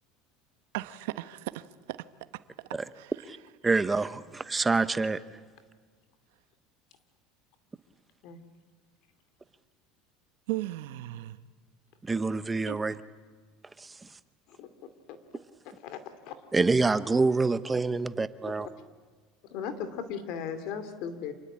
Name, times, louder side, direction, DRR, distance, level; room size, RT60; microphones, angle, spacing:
voice 1, 0.7-2.0 2.9-3.1 10.5-11.4 12.7-12.8, right 17 dB, 85° right, 1.1 m, -36 dB
voice 2, 3.6-5.2 12.1-12.9 13.8-13.9 16.5-18.7, right 3 dB, 10° right, 0.8 m, -26 dB
voice 3, 19.5-21.3, left 7 dB, 55° left, 2.6 m, -36 dB
27.5 x 20.0 x 8.8 m
cardioid pair, 150°, 0 cm